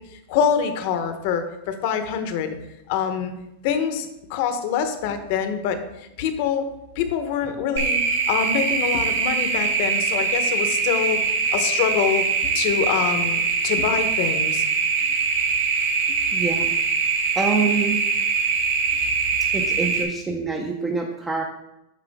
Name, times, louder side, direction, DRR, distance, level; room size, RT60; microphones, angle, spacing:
voice 1, 0.3-2.6 2.9-3.3 3.6-6.7 7.0-8.0 8.3-11.2 11.5-12.2 12.5-14.6, left 7 dB, 50° left, 8 dB, 0.9 m, -25 dB
sound 1, 7.8-20.0, right 5 dB, 75° right, 1.8 m, -23 dB
voice 2, 16.3-16.7 17.4-18.0 19.5-21.4, right 4 dB, 10° right, 1 dB, 0.7 m, -25 dB
9.2 x 6.0 x 3.6 m, 0.90 s
supercardioid pair, 160°, 0 cm